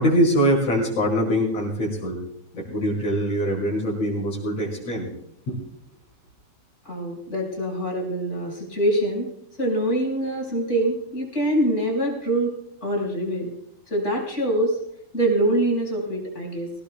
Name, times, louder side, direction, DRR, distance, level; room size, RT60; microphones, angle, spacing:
voice 1, 0.0-2.2 2.5-5.1 5.5-5.6, equal, 60° left, -4 dB, 6.0 m, -23 dB
voice 2, 6.9-9.3 9.6-12.5 12.8-13.5 13.9-14.8 15.1-16.7, right 1 dB, 20° left, -1 dB, 5.4 m, -24 dB
23.0 x 17.5 x 2.3 m, 0.74 s
omnidirectional pair, 3.3 m